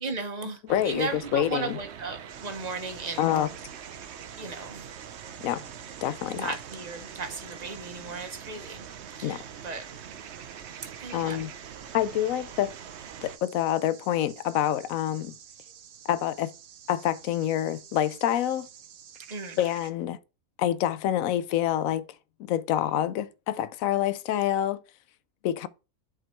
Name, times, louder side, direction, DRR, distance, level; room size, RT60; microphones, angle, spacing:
voice 1, 0.0-3.4 4.4-4.8 6.3-9.9 10.8-11.5 19.3-19.6, right 4 dB, 30° right, 1.2 m, -36 dB
voice 2, 0.7-1.8 3.2-3.5 5.4-5.6 6.0-6.5 9.2-9.4 11.1-11.5 11.9-12.7 13.2-15.4 16.1-16.5 16.9-18.7 19.6-20.2 20.6-22.1 22.4-24.8 25.4-25.7, left 11 dB, 75° left, 1.0 m, -27 dB
sound 1, 0.7-13.4, right 8 dB, 55° right, 0.9 m, -44 dB
sound 2, 2.3-19.9, right 8 dB, 80° right, 1.3 m, -50 dB
7.4 x 4.9 x 4.4 m
omnidirectional pair, 1.5 m